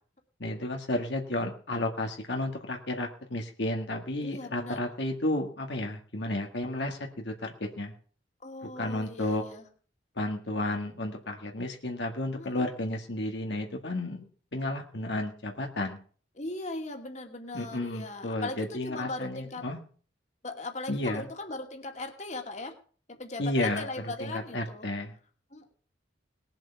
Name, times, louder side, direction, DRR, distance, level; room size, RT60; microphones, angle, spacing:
voice 1, 0.4-7.9 8.8-9.4 10.2-14.3 14.5-16.0 17.5-19.8 20.9-21.3 23.4-25.1, left 1 dB, 65° left, 2 dB, 1.8 m, -32 dB
voice 2, 4.2-4.9 8.4-9.7 12.4-12.7 16.3-19.7 20.4-22.8 23.1-24.9 25.5-25.7, left 2 dB, 40° left, 3 dB, 2.3 m, -39 dB
19.5 x 7.8 x 5.7 m, 0.43 s
head